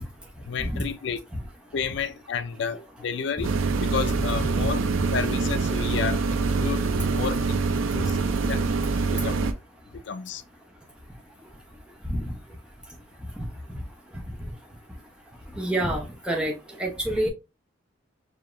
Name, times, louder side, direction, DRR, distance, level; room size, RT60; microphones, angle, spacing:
voice 1, 0.5-1.2 1.7-4.8 5.1-7.6 7.9-8.2 8.5-8.7 9.1-9.5 10.0-10.4, left 6 dB, 60° left, 0.4 m, -31 dB
sound 1, 3.4-9.5, right 4 dB, 80° right, 0.5 m, -25 dB
voice 2, 15.6-16.5 16.8-17.3, right 1 dB, 5° right, 0.7 m, -27 dB
4.9 x 2.8 x 2.5 m
head